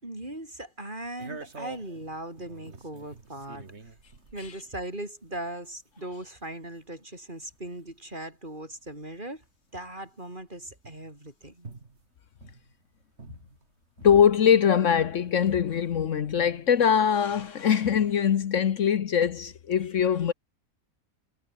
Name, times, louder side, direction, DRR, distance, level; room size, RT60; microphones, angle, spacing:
voice 1, 0.0-3.9 4.3-9.4 9.7-11.7, right 1 dB, 35° right, 6.2 m, -39 dB
sound 1, 1.2-14.4 14.7-16.9 17.3-17.8, right 4 dB, 50° right, 2.6 m, -49 dB
voice 2, 14.0-20.3, left 8 dB, 65° left, 1.3 m, -22 dB
omnidirectional pair, 1.4 m